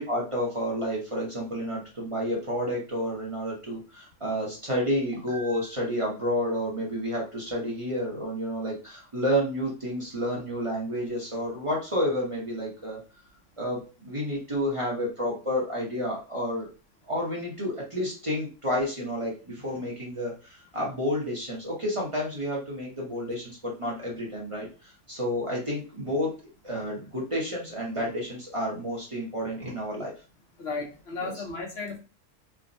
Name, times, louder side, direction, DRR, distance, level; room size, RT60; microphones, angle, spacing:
voice 1, 0.0-13.0 13.6-16.7 17.1-26.3 26.6-30.1 31.2-31.3, equal, 30° right, -4 dB, 0.6 m, -30 dB
voice 2, 30.6-32.0, left 4 dB, 55° left, 2 dB, 0.8 m, -34 dB
3.3 x 2.2 x 2.6 m, 0.33 s
omnidirectional pair, 1.6 m